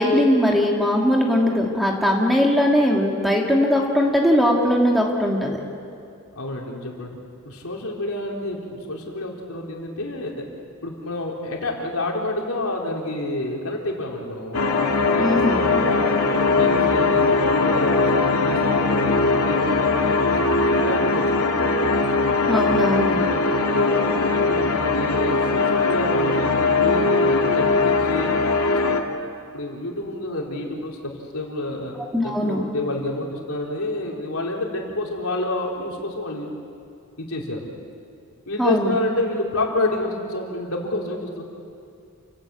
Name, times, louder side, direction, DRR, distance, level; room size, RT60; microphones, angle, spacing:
voice 1, 0.0-5.6 15.2-15.5 22.5-23.3 32.1-32.6 38.6-38.9, left 1 dB, ahead, -1 dB, 2.2 m, -20 dB
voice 2, 6.4-7.2 7.5-10.5 10.8-14.6 15.1-21.7 23.3-28.3 29.5-31.0 31.3-31.9 32.4-36.5 37.2-37.7 38.5-41.4, left 1 dB, 70° left, -1 dB, 3.8 m, -29 dB
sound 1, 14.5-29.0, left 3 dB, 90° left, 2.1 m, -20 dB
29.0 x 17.0 x 8.5 m, 2.4 s
head